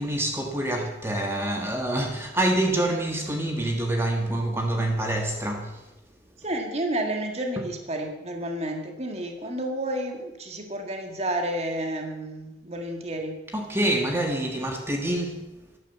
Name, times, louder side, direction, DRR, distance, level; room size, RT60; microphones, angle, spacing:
voice 1, 0.0-5.8 13.5-15.5, right 1 dB, 15° right, 1.5 m, -26 dB
voice 2, 6.4-13.4, right 1 dB, 35° right, 1.8 m, -31 dB
13.0 x 11.0 x 7.2 m
head